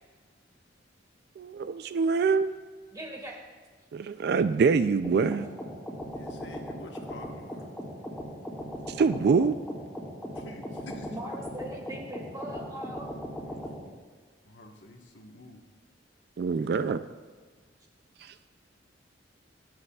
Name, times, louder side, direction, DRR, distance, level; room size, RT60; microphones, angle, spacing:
voice 1, 1.4-2.5 3.9-5.4 9.0-9.6 16.4-17.0, right 5 dB, 60° right, 0.3 m, -24 dB
voice 2, 2.9-3.4 11.1-13.1, equal, 20° right, 2.0 m, -40 dB
sound 1, 5.0-13.8, equal, ahead, 3.0 m, -38 dB
voice 3, 6.1-7.7 10.3-11.2 13.4-13.6 14.5-15.6 16.5-17.0, left 1 dB, 75° left, 1.2 m, -47 dB
23.0 x 7.8 x 2.3 m
head